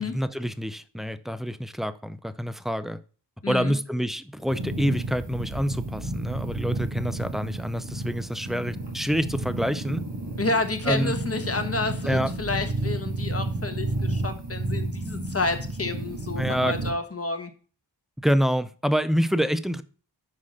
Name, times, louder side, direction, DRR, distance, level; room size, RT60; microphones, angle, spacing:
voice 1, 0.0-3.0 3.5-10.1 10.9-11.1 12.0-12.3 16.4-16.8 18.2-19.8, equal, ahead, 0.5 m, -27 dB
voice 2, 3.4-3.7 10.4-17.5, left 3 dB, 35° left, 1.3 m, -29 dB
sound 1, 4.5-16.9, right 2 dB, 70° right, 2.8 m, -31 dB
5.7 x 4.7 x 6.4 m
cardioid pair, 45°, 43 cm